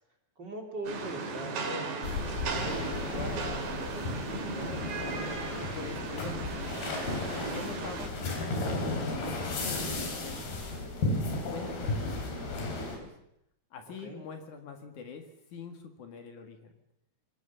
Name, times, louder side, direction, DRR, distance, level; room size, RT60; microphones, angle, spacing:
voice 1, 0.4-4.8 14.0-14.2, right 1 dB, 30° right, 2 dB, 2.7 m, -42 dB
Rain, 0.8-8.1, right 4 dB, 70° right, 4.3 m, -37 dB
sound 1, 2.0-13.0, left 2 dB, 90° left, 5.6 m, -34 dB
voice 2, 5.7-6.7 7.5-8.6 9.0-10.9 11.3-13.1 13.7-16.7, left 5 dB, 60° left, 6 dB, 3.0 m, -45 dB
25.5 x 17.0 x 7.0 m, 0.78 s
omnidirectional pair, 4.3 m